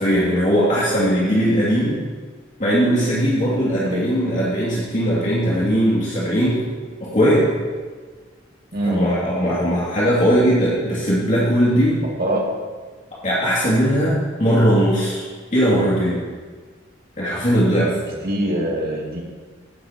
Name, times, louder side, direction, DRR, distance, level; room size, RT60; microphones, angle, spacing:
voice 1, 0.0-2.0 2.6-6.6 7.0-7.5 8.8-12.0 13.1-15.2 15.5-16.2 17.2-17.9, equal, 40° left, -8 dB, 2.7 m, -19 dB
voice 2, 8.7-9.0 12.2-12.4 18.1-19.2, right 1 dB, 50° right, -2 dB, 2.4 m, -23 dB
15.0 x 11.5 x 3.0 m, 1.5 s
head